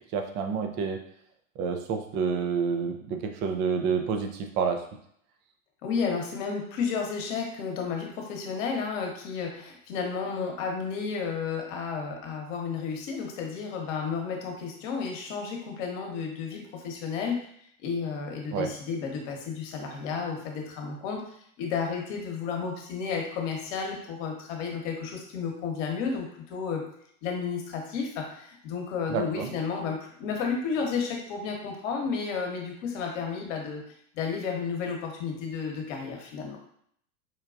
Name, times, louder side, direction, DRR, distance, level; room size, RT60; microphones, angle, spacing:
voice 1, 0.1-1.0 1.6-4.8 18.5-18.7 29.1-29.5, right 6 dB, 30° right, 5 dB, 0.4 m, -28 dB
voice 2, 5.8-17.5 17.8-21.2 21.6-26.8 27.2-33.8 34.1-36.6, left 5 dB, 60° left, 1 dB, 1.1 m, -32 dB
4.5 x 2.3 x 2.4 m, 0.67 s
hypercardioid pair, 105°, 43 cm